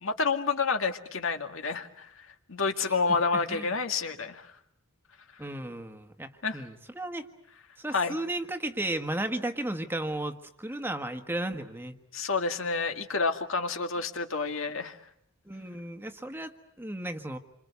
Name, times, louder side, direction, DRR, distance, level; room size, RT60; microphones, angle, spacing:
voice 1, 0.0-2.1 2.5-4.5 6.4-6.6 7.9-8.2 12.1-15.0, left 4 dB, 70° left, 6 dB, 2.0 m, -29 dB
voice 2, 2.8-3.7 5.4-7.3 7.8-11.9 15.5-16.5 16.8-17.4, right 1 dB, 10° right, 6 dB, 1.5 m, -34 dB
28.0 x 26.0 x 8.2 m, 0.71 s
head